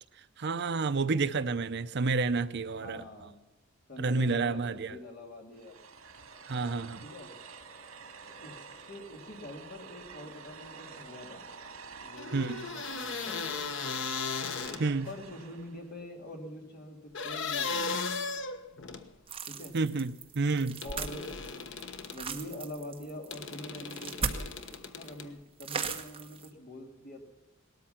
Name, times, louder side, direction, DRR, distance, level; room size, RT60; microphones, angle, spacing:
voice 1, 0.4-3.0 4.0-5.0 6.5-7.0 12.3-12.6 14.8-15.1 19.7-20.8, right 4 dB, 55° right, 0.6 m, -29 dB
voice 2, 2.7-3.4 3.9-5.8 6.5-7.3 8.4-11.4 12.0-13.6 14.7-18.1 19.4-19.8 20.8-21.3 22.1-27.2, left 1 dB, 45° left, 3.0 m, -45 dB
sound 1, 5.5-15.9, right 5 dB, 80° right, 2.0 m, -49 dB
sound 2, 12.2-15.2 17.1-19.1 20.8-22.2 23.3-25.3, left 5 dB, 65° left, 1.2 m, -36 dB
sound 3, 19.3-24.8 25.0-25.1 25.6-26.5, right 5 dB, 25° right, 1.3 m, -37 dB
19.0 x 13.5 x 5.8 m
head